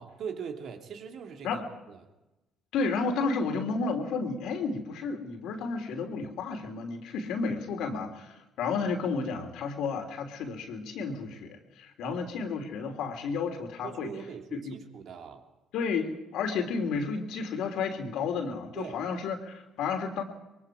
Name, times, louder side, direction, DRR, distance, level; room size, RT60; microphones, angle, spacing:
voice 1, 0.0-1.6 1.9-2.0 12.0-12.2 13.8-15.4 18.7-19.0, right 7 dB, 60° right, 3 dB, 2.8 m, -41 dB
voice 2, 2.7-14.1 14.5-14.7 15.7-20.2, left 4 dB, 70° left, 5 dB, 3.2 m, -32 dB
24.0 x 23.0 x 4.9 m, 0.98 s
hypercardioid pair, 50°, 0 cm